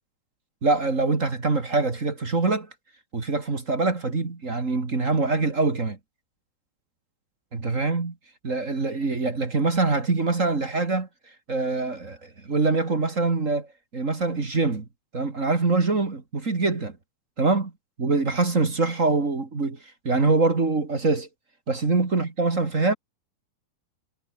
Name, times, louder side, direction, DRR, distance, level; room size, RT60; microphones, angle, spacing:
voice 1, 0.6-2.7 3.1-6.0 7.5-8.1 8.4-11.1 11.5-13.7 13.9-14.9 15.1-17.0 17.4-17.7 18.0-19.8 20.0-21.3 21.7-22.9, right 3 dB, 25° right, 1.8 m, -24 dB
omnidirectional pair, 4.8 m